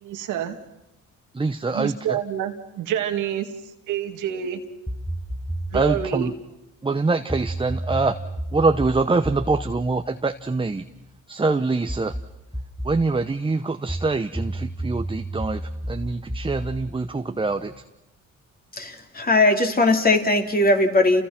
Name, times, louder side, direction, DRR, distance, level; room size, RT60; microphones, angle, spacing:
voice 1, 0.0-0.6 1.7-3.5 3.9-4.6 5.7-6.3, right 10 dB, 90° right, 6 dB, 2.2 m, -27 dB
voice 2, 1.3-2.2 5.7-6.3 6.8-8.2 8.5-10.8 11.3-12.1 12.8-17.7, right 3 dB, 15° right, 8 dB, 0.9 m, -24 dB
sound 1, 4.9-6.2 7.3-11.0 11.9-13.1 13.9-17.8, right 1 dB, 5° left, 1.2 m, -32 dB
voice 3, 18.8-21.2, left 2 dB, 30° left, 5 dB, 3.2 m, -19 dB
30.0 x 28.5 x 6.0 m, 0.88 s
cardioid pair, 90°, 30 cm